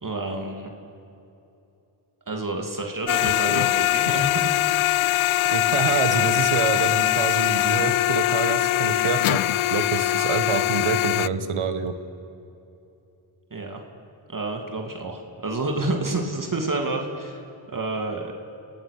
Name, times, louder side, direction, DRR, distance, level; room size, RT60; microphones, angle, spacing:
voice 1, 0.0-0.7 2.3-4.6 13.5-13.8 14.3-17.4 17.7-18.3, right 2 dB, 40° right, 2 dB, 2.8 m, -29 dB
sound 1, 3.1-11.3, left 15 dB, 85° left, 0.5 m, -22 dB
voice 2, 5.5-9.4 9.7-11.9, right 6 dB, 90° right, 10 dB, 1.7 m, -26 dB
27.5 x 17.5 x 6.8 m, 2.8 s
cardioid pair, 65°, 48 cm